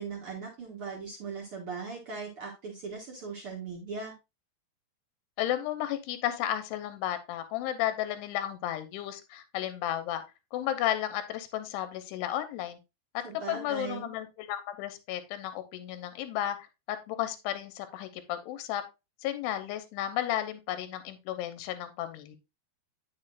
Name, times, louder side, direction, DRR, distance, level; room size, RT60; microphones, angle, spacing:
voice 1, 0.0-4.1 13.2-14.1, right 5 dB, 85° right, -1 dB, 1.2 m, -39 dB
voice 2, 5.4-10.2 10.5-12.8 13.1-16.6 16.9-18.8 19.2-22.4, left 12 dB, 85° left, 9 dB, 2.9 m, -33 dB
9.8 x 6.8 x 2.4 m, 0.25 s
omnidirectional pair, 4.8 m